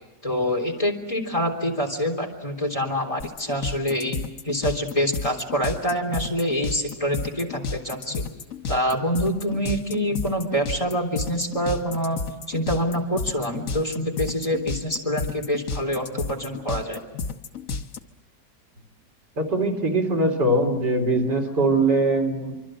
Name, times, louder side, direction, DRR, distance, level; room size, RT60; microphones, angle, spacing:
voice 1, 0.2-4.2 4.4-8.2 8.7-12.2 12.5-17.0, equal, 20° left, 2 dB, 3.5 m, -26 dB
sound 1, 3.2-18.0, left 4 dB, 55° left, 1.4 m, -31 dB
voice 2, 19.4-22.5, right 2 dB, 80° right, 2 dB, 4.0 m, -22 dB
25.5 x 25.0 x 7.7 m, 1.0 s
omnidirectional pair, 1.8 m